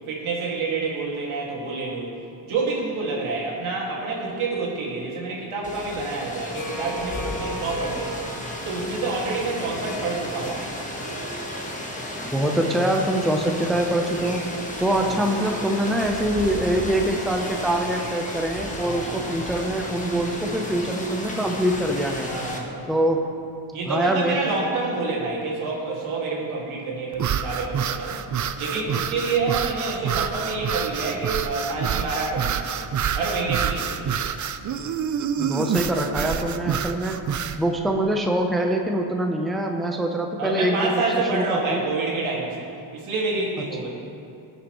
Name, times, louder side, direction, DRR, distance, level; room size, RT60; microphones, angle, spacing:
voice 1, 0.1-2.1 2.4-8.2 8.6-10.8 15.0-15.2 18.8-19.2 22.2-22.9 23.7-28.2 28.6-32.8 33.2-33.9 40.4-43.9, right 3 dB, 75° right, -4 dB, 2.4 m, -28 dB
Rain, 5.6-22.6, left 1 dB, 15° left, 1.4 m, -34 dB
Harp, 6.5-20.9, right 1 dB, 50° left, 2.4 m, -39 dB
voice 2, 12.3-14.5 14.8-22.3 22.9-23.3 23.9-24.4 35.4-37.2 37.6-41.0 41.3-41.8, right 1 dB, ahead, 2 dB, 0.7 m, -24 dB
sound 1, 27.1-37.6, right 8 dB, 40° right, 0.5 m, -27 dB
18.0 x 6.8 x 3.1 m, 2.6 s
cardioid pair, 90°, 49 cm